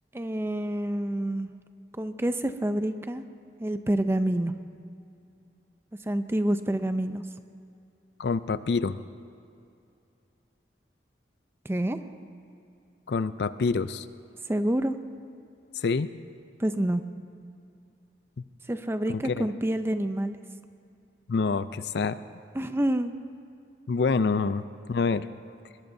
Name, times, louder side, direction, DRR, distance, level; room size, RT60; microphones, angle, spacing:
voice 1, 0.1-1.5 2.0-3.2 3.6-4.5 6.1-7.2 11.6-12.0 14.5-14.9 16.6-17.0 18.7-20.4 22.5-23.1 24.2-24.4, right 1 dB, 15° right, 9 dB, 0.5 m, -27 dB
voice 2, 8.2-9.0 13.1-14.1 15.8-16.1 19.1-19.5 21.3-22.2 23.9-24.6 24.9-25.3, left 4 dB, 65° left, 14 dB, 0.4 m, -26 dB
21.0 x 21.0 x 2.7 m, 2.5 s
head